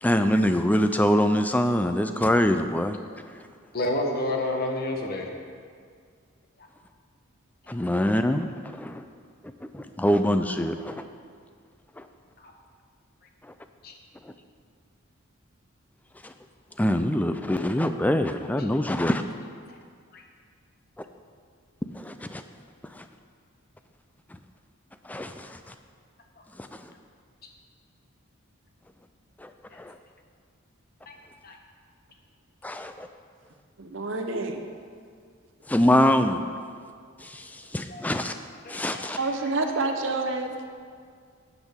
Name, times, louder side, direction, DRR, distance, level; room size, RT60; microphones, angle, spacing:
voice 1, 0.0-3.0 7.7-8.5 8.7-9.0 9.7-11.0 12.0-12.1 16.2-16.3 16.8-19.2 21.9-22.4 22.9-23.0 25.0-25.6 26.6-26.9 29.4-29.5 29.8-29.9 32.6-33.1 35.7-36.4 37.2-38.3 38.7-39.2, left 1 dB, 5° left, 8 dB, 0.3 m, -24 dB
voice 2, 3.7-5.3 12.4-12.5 13.8-13.9 20.1-20.2 31.1-31.2 31.4-31.5 37.9-38.0 38.6-39.1, left 1 dB, 45° left, 2 dB, 1.1 m, -29 dB
voice 3, 33.8-34.6 39.2-40.6, right 3 dB, 60° right, 4 dB, 0.9 m, -28 dB
11.5 x 8.1 x 3.6 m, 2.1 s
head